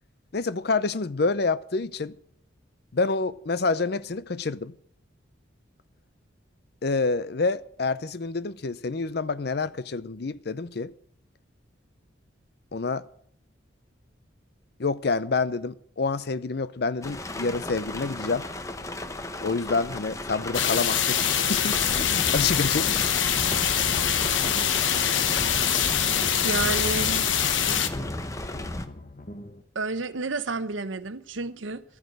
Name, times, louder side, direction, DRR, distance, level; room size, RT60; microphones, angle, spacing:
voice 1, 0.3-2.1 2.9-4.7 6.8-10.9 12.7-13.0 14.8-18.5 19.4-21.8 22.1-22.9, left 4 dB, 55° left, 0.6 m, -27 dB
sound 1, 17.0-28.9, left 1 dB, 15° left, 0.8 m, -34 dB
sound 2, 20.5-27.9, left 9 dB, 80° left, 1.1 m, -24 dB
sound 3, 22.1-23.3 23.6-24.9 25.2-26.5 26.8-29.6, left 1 dB, 40° left, 1.1 m, -43 dB
voice 2, 26.4-27.4 29.7-31.8, right 3 dB, 80° right, 0.9 m, -30 dB
12.5 x 9.3 x 7.8 m
head